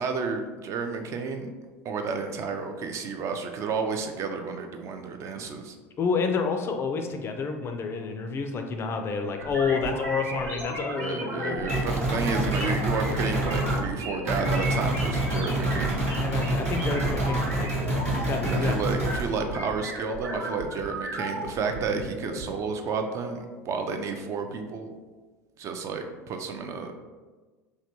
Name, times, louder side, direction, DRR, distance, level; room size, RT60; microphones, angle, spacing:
voice 1, 0.0-1.5 1.8-5.8 10.9-16.0 18.4-24.9 25.6-26.9, right 5 dB, 40° right, 5 dB, 0.3 m, -31 dB
voice 2, 6.0-11.7 16.2-18.8 19.0-19.2, left 5 dB, 30° left, 5 dB, 0.3 m, -29 dB
sound 1, 9.4-22.4, right 1 dB, 65° right, 1.0 m, -35 dB
sound 2, 11.7-13.8 14.3-19.2, right 1 dB, 85° right, 1.2 m, -27 dB
3.2 x 2.2 x 2.9 m, 1.3 s
figure-of-eight pair, 75°, 8 cm